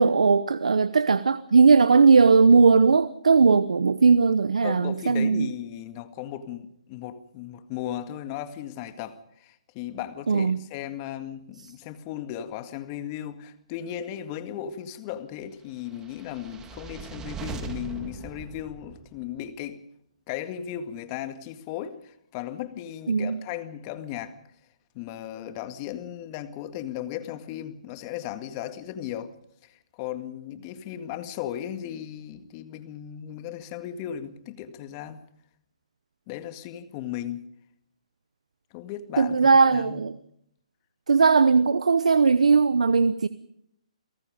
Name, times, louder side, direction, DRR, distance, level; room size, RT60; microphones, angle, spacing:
voice 1, 0.0-5.5 10.3-10.6 23.1-23.4 39.2-40.1 41.1-43.3, right 4 dB, 80° right, 0.9 m, -18 dB
voice 2, 4.6-19.8 20.3-24.4 24.9-29.3 29.6-35.2 36.3-37.5 38.7-40.0, left 11 dB, 30° left, 2.0 m, -36 dB
sound 1, 15.9-19.4, right 6 dB, 15° right, 2.0 m, -40 dB
29.5 x 18.0 x 5.2 m
hypercardioid pair, 145°, 4 cm